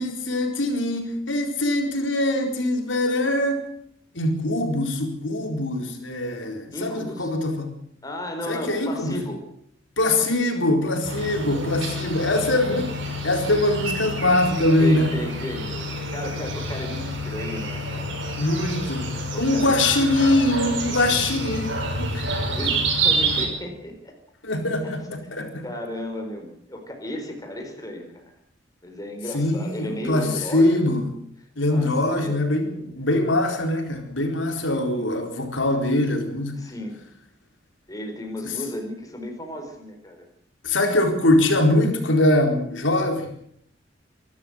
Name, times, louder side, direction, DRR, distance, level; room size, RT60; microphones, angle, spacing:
voice 1, 0.0-3.6 4.1-7.7 8.5-9.2 10.0-15.1 18.4-22.3 24.4-25.7 29.3-31.2 31.6-36.6 38.4-38.5 40.6-43.3, left 1 dB, 90° left, 4 dB, 4.3 m, -23 dB
voice 2, 6.7-7.3 8.0-9.4 13.6-13.7 14.8-18.2 19.3-19.8 21.1-21.8 22.2-24.2 24.8-28.3 28.8-31.0 31.7-32.4 34.9-35.1 36.6-37.0 37.9-40.3, left 1 dB, 20° left, 3 dB, 4.5 m, -35 dB
sound 1, 11.0-23.5, right 1 dB, 75° right, 5.9 m, -28 dB
25.0 x 13.0 x 8.0 m, 0.69 s
head